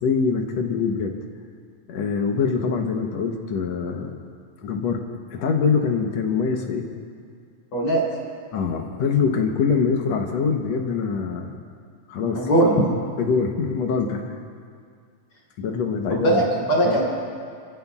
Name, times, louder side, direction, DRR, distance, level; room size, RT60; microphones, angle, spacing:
voice 1, 0.0-1.1 1.9-4.2 4.6-6.9 8.5-11.6 12.1-12.5 13.1-14.3 15.6-16.4 16.9-17.0, left 5 dB, 70° left, 3 dB, 2.1 m, -24 dB
voice 2, 12.2-12.9 16.1-17.0, right 1 dB, 50° left, -5 dB, 4.3 m, -20 dB
29.5 x 14.5 x 2.4 m, 2.1 s
omnidirectional pair, 3.3 m